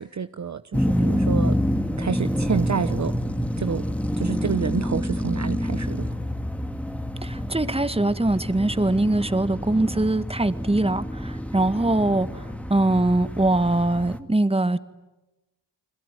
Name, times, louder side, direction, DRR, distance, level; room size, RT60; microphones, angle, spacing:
voice 1, 0.0-1.6 2.0-3.1 3.6-3.8 4.2-6.2, right 6 dB, 40° right, 1.0 m, -28 dB
sound 1, 0.7-14.2, equal, 5° left, 2.3 m, -27 dB
voice 2, 7.2-12.4 12.7-14.8, right 2 dB, 15° right, 1.8 m, -22 dB
30.0 x 21.0 x 9.3 m
supercardioid pair, 50°, 44 cm